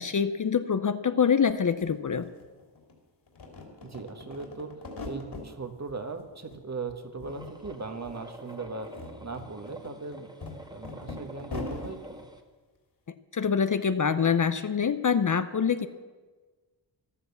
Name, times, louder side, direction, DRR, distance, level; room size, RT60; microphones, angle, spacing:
voice 1, 0.0-2.3 13.3-15.9, left 6 dB, 40° left, 11 dB, 0.7 m, -25 dB
sound 1, 1.5-1.6 1.8-2.9 3.3-5.5 5.9-6.6 6.9-8.2 8.7-11.9, left 3 dB, 55° left, 3.3 m, -41 dB
voice 2, 3.8-4.7 5.0-8.9 9.2-10.3 10.7-12.3, right 4 dB, 35° right, 7 dB, 1.6 m, -38 dB
sound 2, 7.3-12.4, right 1 dB, 10° right, 1.6 m, -47 dB
14.0 x 12.0 x 7.1 m, 1.3 s
cardioid pair, 85°, 47 cm